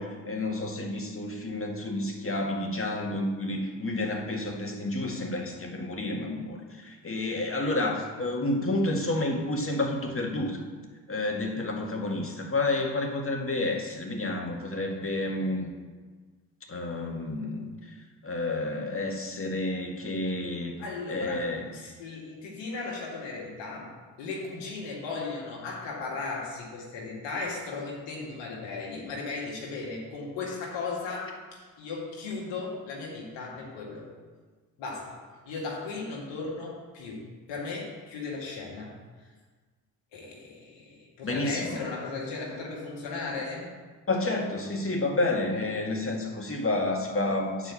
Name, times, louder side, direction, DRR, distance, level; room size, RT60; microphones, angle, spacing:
voice 1, 0.0-10.6 11.1-15.7 16.7-17.7 18.2-20.8 21.1-21.7 41.2-41.8 44.1-47.7, left 2 dB, 30° left, 1 dB, 2.1 m, -30 dB
voice 2, 20.8-34.1 34.8-35.2 35.5-37.2 37.5-38.9 39.2-39.3 40.1-43.7, left 3 dB, 75° left, -3 dB, 2.0 m, -36 dB
8.8 x 4.9 x 7.0 m, 1.4 s
hypercardioid pair, 40°, 45 cm